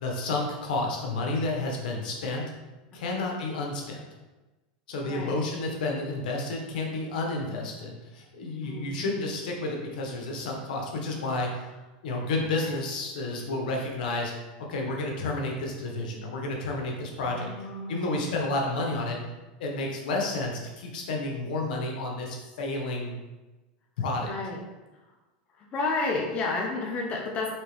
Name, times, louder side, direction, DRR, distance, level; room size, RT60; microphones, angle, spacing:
voice 1, 0.0-2.4 2.9-4.0 4.9-11.6 12.0-14.3 14.6-17.5 17.9-19.2 19.6-23.2 24.0-24.3, left 2 dB, 80° left, 0 dB, 0.9 m, -31 dB
voice 2, 5.0-5.4 8.4-9.0 12.6-12.8 17.3-18.3 24.2-24.6 25.5-27.5, left 3 dB, 30° left, -1 dB, 0.7 m, -32 dB
4.4 x 2.8 x 3.4 m, 1.1 s
supercardioid pair, 140°, 5 cm